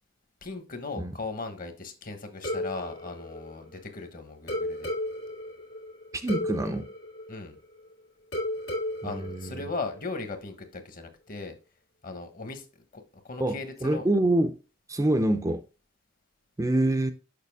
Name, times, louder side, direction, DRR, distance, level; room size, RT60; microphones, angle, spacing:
voice 1, 0.4-4.9 7.3-7.6 9.0-11.5 12.0-12.6 12.9-14.1, left 3 dB, 45° left, 1.2 m, -38 dB
sound 1, 2.4-4.0 4.5-7.9 8.3-10.3, left 1 dB, 90° left, 2.2 m, -34 dB
voice 2, 6.2-6.9 9.0-9.7 13.4-14.5 14.9-15.6 16.6-17.1, right 1 dB, 15° right, 0.5 m, -26 dB
6.7 x 5.6 x 3.5 m
head